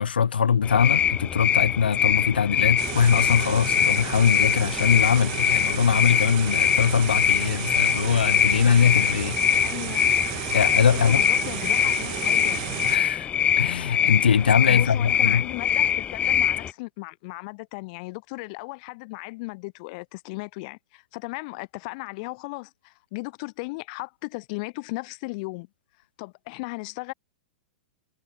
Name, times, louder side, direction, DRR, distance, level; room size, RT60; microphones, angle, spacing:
voice 1, 0.0-9.7 10.5-11.2 12.8-13.3 13.6-15.4, left 7 dB, 80° left, 0.8 m, -22 dB
sound 1, 0.6-16.7, left 9 dB, 25° left, 0.5 m, -23 dB
sound 2, 2.8-13.0, right 31 dB, 50° right, 1.5 m, -33 dB
voice 2, 9.6-10.1 10.9-12.6 14.7-25.7 26.2-27.1, left 27 dB, 50° left, 1.9 m, -36 dB
hypercardioid pair, 105°, 5 cm